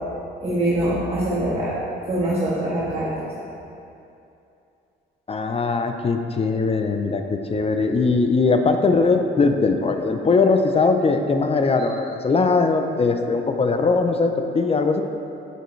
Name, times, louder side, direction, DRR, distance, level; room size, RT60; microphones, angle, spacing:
voice 1, 0.4-1.7 2.1-3.3, right 1 dB, 30° right, -8 dB, 1.4 m, -23 dB
voice 2, 5.3-15.0, left 4 dB, 30° left, 6 dB, 0.5 m, -20 dB
9.2 x 5.4 x 3.2 m, 2.7 s
cardioid pair, 90°, 20 cm